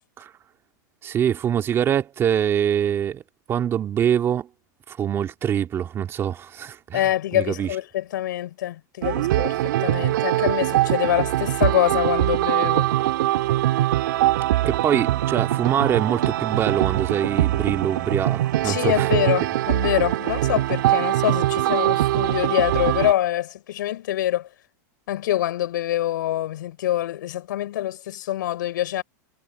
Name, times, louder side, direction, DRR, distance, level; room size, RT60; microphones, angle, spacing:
voice 1, 1.0-3.2 3.5-4.5 4.9-7.7 14.7-19.1, right 9 dB, 25° right, 2.2 m, -24 dB
voice 2, 6.9-12.9 18.6-24.5 25.1-29.0, left 13 dB, 75° left, 4.5 m, -25 dB
sound 1, 9.0-23.1, right 14 dB, 70° right, 2.2 m, -22 dB
supercardioid pair, 145°, 10 cm